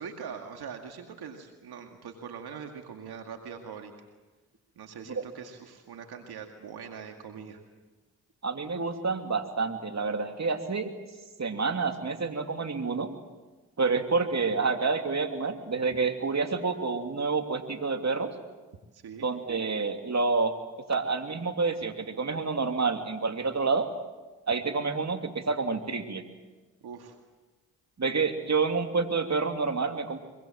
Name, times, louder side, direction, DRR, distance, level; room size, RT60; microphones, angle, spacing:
voice 1, 0.0-3.9 4.8-7.6 18.9-19.3 26.8-27.2, right 6 dB, 80° right, 4 dB, 2.2 m, -42 dB
voice 2, 8.4-10.9 11.4-13.1 13.8-18.3 19.2-20.6 20.9-23.9 24.5-26.2 28.0-30.2, right 4 dB, 45° right, 5 dB, 3.1 m, -28 dB
24.5 x 24.0 x 7.6 m, 1.2 s
supercardioid pair, 40°, 38 cm